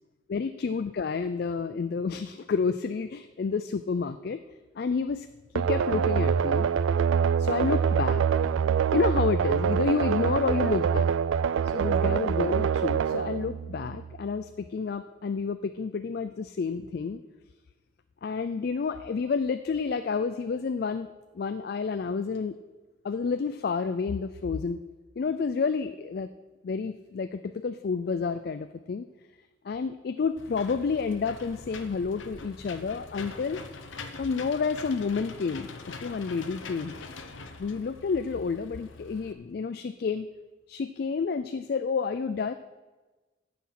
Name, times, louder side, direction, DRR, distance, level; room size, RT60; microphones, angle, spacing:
voice 1, 0.3-4.4 4.8-5.3 5.5-6.7 7.4-8.2 8.9-11.1 11.7-17.2 18.2-21.1 21.3-22.6 23.0-24.8 25.2-26.3 26.6-29.1 29.6-33.6 34.2-37.0 37.6-40.3 40.7-42.5, left 5 dB, 50° left, 11 dB, 0.3 m, -30 dB
sound 1, 5.5-14.2, right 7 dB, 80° right, 0.3 m, -25 dB
Engine / Mechanisms, 30.4-39.3, left 3 dB, 80° left, 0.9 m, -43 dB
15.5 x 5.9 x 5.8 m, 1.2 s
head